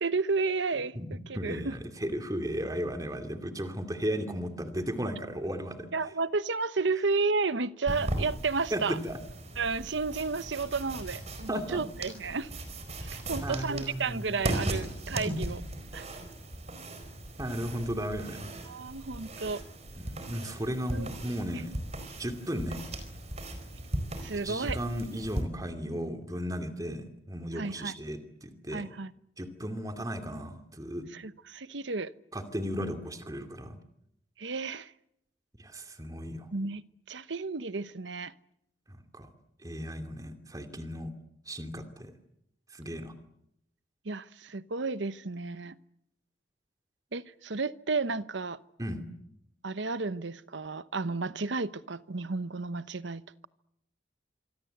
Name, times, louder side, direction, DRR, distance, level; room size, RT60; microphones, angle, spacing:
voice 1, 0.0-1.7 5.9-9.0 9.6-12.5 13.0-15.6 15.9-16.1 18.7-19.6 20.9-21.1 24.2-24.8 27.5-27.9 28.7-29.1 31.1-32.1 34.4-34.9 36.5-36.8 37.1-38.3 44.0-45.8 47.1-48.6 49.6-53.2, right 4 dB, 75° right, 1.0 m, -32 dB
voice 2, 1.3-5.9 8.7-9.2 11.5-11.8 13.4-14.4 15.3-15.4 17.4-18.5 20.0-21.7 22.2-22.8 24.4-28.9 29.4-31.1 32.3-33.8 35.6-36.5 38.9-39.3 39.6-41.1 41.5-42.1 42.7-43.1 48.8-49.0, equal, 20° right, 2.5 m, -35 dB
sound 1, 7.9-25.4, right 1 dB, 35° right, 4.5 m, -38 dB
26.5 x 24.5 x 8.0 m
head